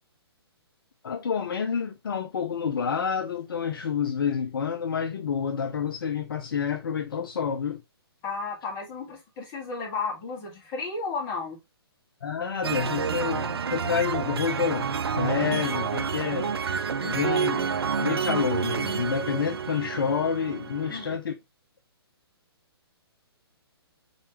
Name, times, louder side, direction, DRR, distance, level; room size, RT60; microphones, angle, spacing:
voice 1, 1.0-7.8 12.2-16.6 17.0-17.7 18.0-21.4, left 7 dB, 55° left, 0.5 m, -28 dB
voice 2, 8.2-11.6 20.9-21.0, left 4 dB, 25° left, 1.8 m, -33 dB
sound 1, 12.6-21.2, right 6 dB, 70° right, 0.4 m, -29 dB
4.2 x 3.9 x 3.0 m
figure-of-eight pair, 130°, 14 cm